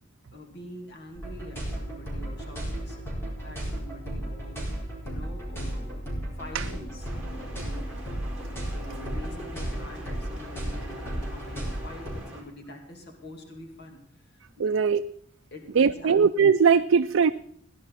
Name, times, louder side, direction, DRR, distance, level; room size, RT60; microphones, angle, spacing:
voice 1, 0.3-3.0 3.4-8.0 8.7-14.0 14.3-14.8 15.5-16.2, left 1 dB, 55° left, 3 dB, 2.5 m, -45 dB
sound 1, 1.1-12.1, right 1 dB, 10° left, 4.6 m, -34 dB
sound 2, 7.0-12.4, right 1 dB, 5° right, 4.4 m, -45 dB
voice 2, 14.6-15.0 15.8-17.3, right 6 dB, 70° right, 9 dB, 0.4 m, -20 dB
17.5 x 11.0 x 4.2 m, 0.64 s
head